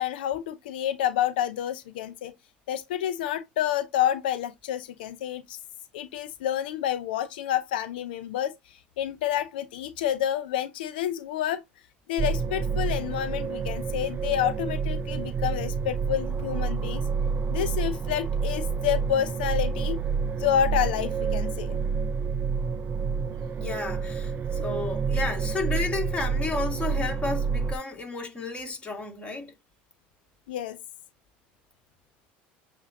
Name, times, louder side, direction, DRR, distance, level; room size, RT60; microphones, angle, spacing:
voice 1, 0.0-2.3 2.7-5.6 5.9-11.6 12.1-17.0 17.5-20.0 20.4-21.8 30.5-30.8, left 11 dB, 85° left, 0.5 m, -29 dB
sound 1, 12.2-27.8, right 5 dB, 35° right, 0.5 m, -28 dB
voice 2, 23.6-29.5, left 3 dB, 20° left, 2.3 m, -32 dB
7.2 x 2.6 x 2.9 m
hypercardioid pair, 85°, 5 cm